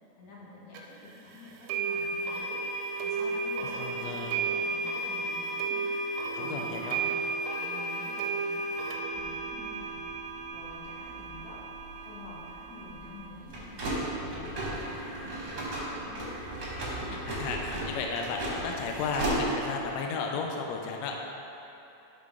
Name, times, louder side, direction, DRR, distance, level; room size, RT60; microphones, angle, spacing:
voice 1, 0.2-2.6 3.0-5.8 6.2-7.2 7.6-10.0 10.5-11.6 12.0-16.2, left 2 dB, 65° left, -6 dB, 2.5 m, -48 dB
sound 1, 0.7-0.8 1.7-13.3, right 3 dB, 80° right, 1.7 m, -33 dB
voice 2, 3.7-4.4 6.3-7.2 16.6-16.7 17.0-21.2, left 4 dB, 85° left, 1 dB, 1.6 m, -34 dB
sound 2, 9.1-19.9, right 1 dB, 55° right, 1.1 m, -36 dB
11.0 x 4.0 x 3.6 m, 3.0 s
omnidirectional pair, 3.7 m